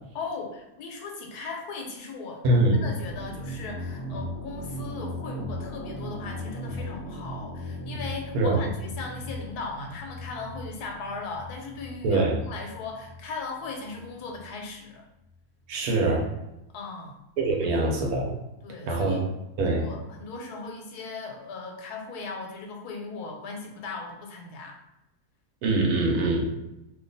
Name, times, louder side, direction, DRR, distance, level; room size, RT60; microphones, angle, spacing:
voice 1, 0.1-15.0 16.7-17.2 17.5-17.9 18.6-19.2 19.6-24.8, left 4 dB, 85° left, 1 dB, 1.2 m, -38 dB
voice 2, 2.4-2.9 8.3-8.6 12.0-12.4 15.7-16.3 17.4-18.4 18.9-19.2 19.6-19.9 25.6-26.5, right 2 dB, 80° right, 0 dB, 1.2 m, -23 dB
sound 1, 3.0-14.5, left 1 dB, 60° left, 0.8 m, -38 dB
2.9 x 2.3 x 3.9 m, 0.92 s
omnidirectional pair, 1.6 m